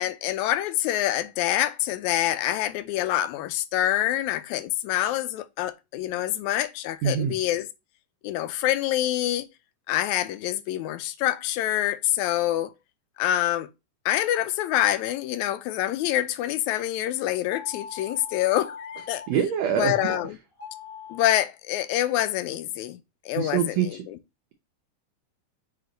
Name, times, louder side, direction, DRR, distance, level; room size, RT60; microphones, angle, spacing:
voice 1, 0.0-7.7 8.2-9.5 9.9-12.7 13.2-13.7 14.1-19.2 19.8-20.4 21.1-23.0 23.3-24.2, left 13 dB, 80° left, 1.8 m, -26 dB
voice 2, 7.0-7.4 19.3-20.2 23.4-24.0, right 8 dB, 85° right, 1.5 m, -25 dB
sound 1, 17.5-19.3 19.8-20.2 20.5-21.3, left 5 dB, 35° left, 1.7 m, -41 dB
7.8 x 3.0 x 3.9 m
omnidirectional pair, 3.8 m